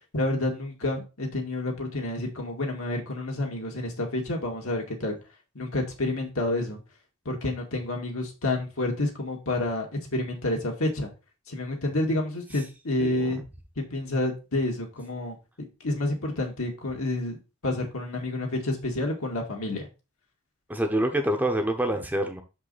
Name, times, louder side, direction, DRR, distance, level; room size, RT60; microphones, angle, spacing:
voice 1, 0.1-5.2 5.5-6.8 7.3-9.9 10.1-11.1 11.5-13.4 13.8-15.4 15.8-19.9, left 2 dB, 70° left, 2.2 m, -29 dB
voice 2, 13.0-13.4 20.7-22.4, right 1 dB, 5° right, 0.8 m, -26 dB
6.5 x 5.3 x 4.1 m
head